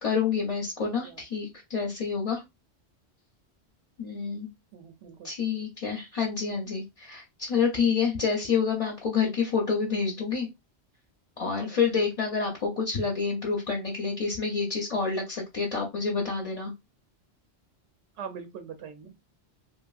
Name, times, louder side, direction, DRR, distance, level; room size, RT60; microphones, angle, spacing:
voice 1, 0.0-2.4 4.0-4.5 5.2-10.5 11.4-16.7, left 5 dB, 40° left, 0.6 m, -28 dB
voice 2, 4.7-5.3 11.5-12.0 18.1-19.1, right 7 dB, 85° right, 0.9 m, -43 dB
2.9 x 2.4 x 2.3 m
omnidirectional pair, 1.1 m